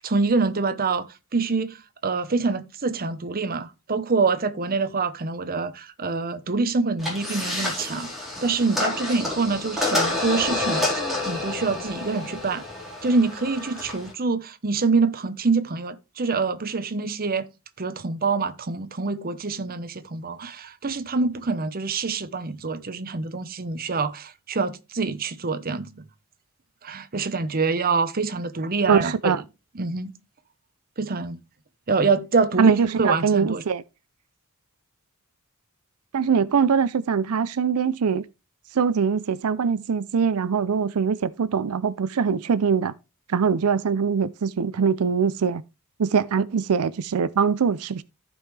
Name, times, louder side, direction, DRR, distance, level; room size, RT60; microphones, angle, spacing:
voice 1, 0.0-1.1 1.3-8.1 8.4-11.0 11.3-12.6 13.0-17.5 17.8-26.0 26.8-29.3 29.7-30.2 31.0-31.4 31.9-33.6, right 4 dB, 45° right, 0.9 m, -25 dB
sound 1, 7.0-14.1, left 2 dB, ahead, 4.1 m, -29 dB
voice 2, 28.9-29.4 32.6-33.8 36.1-38.3 38.7-42.9 43.3-45.6 46.0-48.0, right 6 dB, 85° right, 0.5 m, -22 dB
14.5 x 5.4 x 3.2 m
head